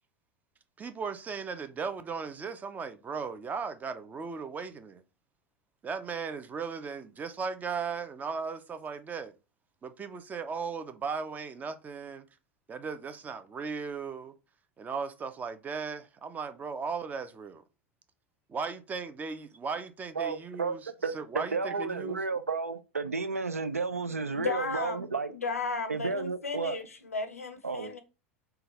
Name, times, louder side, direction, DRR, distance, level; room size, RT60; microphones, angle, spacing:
voice 1, 0.8-5.0 5.8-9.3 9.8-12.2 12.7-14.3 14.8-17.6 18.5-22.2, right 5 dB, 20° right, 0.5 m, -37 dB
voice 2, 20.2-20.8 21.0-25.3 25.9-26.8 27.6-27.9, right 4 dB, 85° right, 0.4 m, -32 dB
voice 3, 24.3-28.0, left 4 dB, 85° left, 0.5 m, -34 dB
3.7 x 2.3 x 2.9 m
figure-of-eight pair, 85°, 8 cm